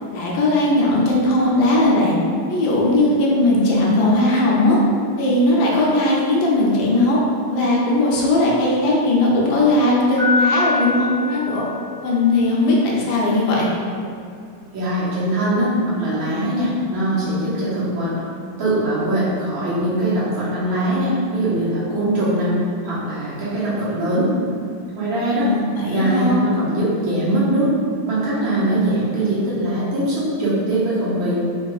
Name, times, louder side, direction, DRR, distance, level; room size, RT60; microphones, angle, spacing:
voice 1, 0.1-2.1 2.5-4.8 5.2-7.2 7.5-11.6 12.0-13.7 25.3-26.4, left 2 dB, 75° left, -4 dB, 1.4 m, -18 dB
Piano, 10.2-12.3, left 3 dB, 45° right, 0.5 m, -24 dB
voice 2, 14.7-18.1 18.6-22.5 22.8-24.3 25.0-25.5 25.9-27.8 28.1-31.3, right 1 dB, 80° right, -10 dB, 1.9 m, -21 dB
4.3 x 3.0 x 2.4 m, 2.4 s
omnidirectional pair, 2.2 m